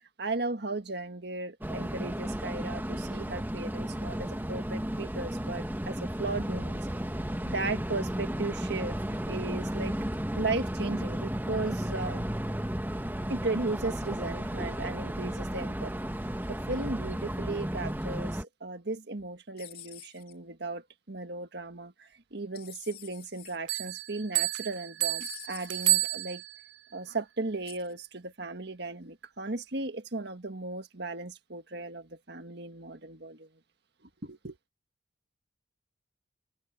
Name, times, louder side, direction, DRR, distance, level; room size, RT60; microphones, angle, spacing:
voice 1, 0.2-6.8 7.5-9.0 9.3-10.0 10.3-12.3 13.3-15.9 16.5-26.4 26.9-33.5 34.2-34.6, right 3 dB, 60° right, 1.7 m, -36 dB
sound 1, 1.6-18.4, equal, 10° right, 1.2 m, -34 dB
sound 2, 19.6-20.3 22.5-23.6 25.2-26.1 27.6-27.9, left 12 dB, 50° left, 2.5 m, -48 dB
sound 3, 23.7-26.7, right 16 dB, 75° right, 0.4 m, -30 dB
head